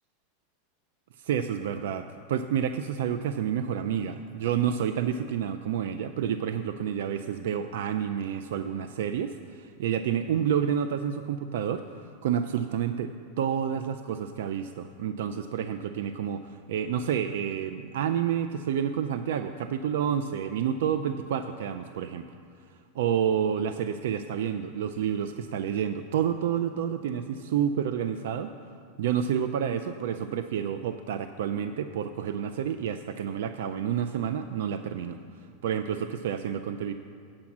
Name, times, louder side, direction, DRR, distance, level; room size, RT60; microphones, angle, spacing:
voice 1, 1.2-13.1 13.4-22.3 22.9-28.5 29.0-36.9, right 8 dB, 75° right, 9 dB, 0.3 m, -29 dB
8.6 x 5.9 x 7.2 m, 2.3 s
supercardioid pair, 145°, 0 cm